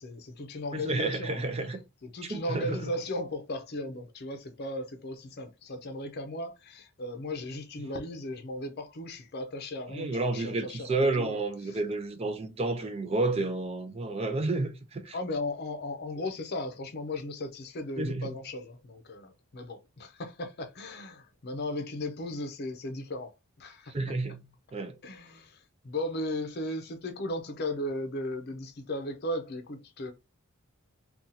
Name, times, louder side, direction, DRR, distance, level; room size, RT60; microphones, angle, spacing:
voice 1, 0.0-1.5 2.0-11.4 15.1-23.3 23.6-24.1 25.0-30.1, left 1 dB, 45° left, 0.6 m, -36 dB
voice 2, 0.7-1.8 2.2-2.8 9.9-15.2 18.0-18.3 23.9-24.4 24.7-25.0, right 2 dB, 25° right, 0.4 m, -30 dB
2.7 x 2.4 x 3.8 m
head